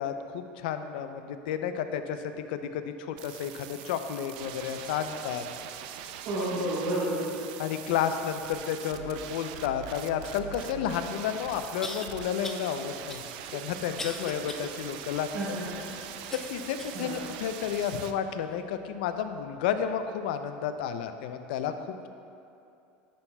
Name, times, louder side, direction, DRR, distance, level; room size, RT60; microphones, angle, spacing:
voice 1, 0.0-5.4 7.6-13.2 13.5-15.3 16.3-22.1, left 8 dB, 85° left, 9 dB, 0.4 m, -31 dB
sound 1, 3.2-18.1, right 9 dB, 75° right, 0.4 m, -42 dB
voice 2, 6.2-7.2 15.3-15.6 16.9-17.2, right 1 dB, 50° right, -9 dB, 1.4 m, -30 dB
sound 2, 10.8-10.9 11.8-12.1 12.4-12.7 13.1-14.7 15.2-15.3 16.3-17.0 17.6-17.7 18.5-18.6, left 2 dB, 10° left, 0.3 m, -40 dB
10.0 x 5.6 x 2.2 m, 2.6 s
supercardioid pair, 150°, 5 cm